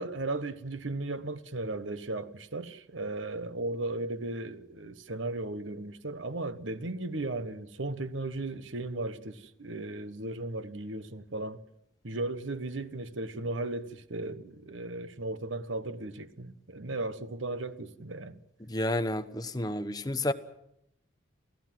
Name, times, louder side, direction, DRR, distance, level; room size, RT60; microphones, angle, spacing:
voice 1, 0.0-11.6 12.0-18.4, right 2 dB, 80° right, 1.2 m, -36 dB
voice 2, 18.7-20.3, left 1 dB, 20° left, 1.0 m, -30 dB
28.0 x 16.0 x 7.6 m
head